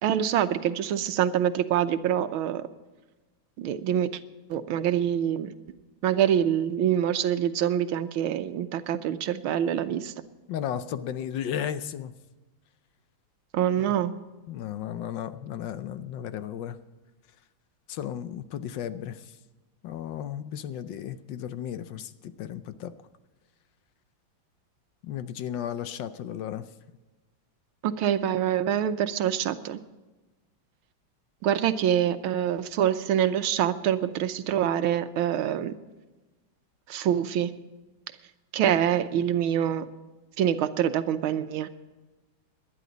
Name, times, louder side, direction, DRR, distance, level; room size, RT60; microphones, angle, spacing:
voice 1, 0.0-2.6 3.6-4.1 4.5-5.5 6.0-10.1 13.5-14.1 27.8-29.8 31.4-35.7 36.9-37.5 38.5-39.9 40.4-41.7, right 10 dB, 85° right, 11 dB, 1.6 m, -25 dB
voice 2, 10.5-12.1 13.9-14.0 14.5-16.8 17.9-19.4 19.8-22.9 25.0-26.7, left 10 dB, 70° left, 12 dB, 1.3 m, -34 dB
19.0 x 11.5 x 4.0 m, 1.2 s
omnidirectional pair, 2.2 m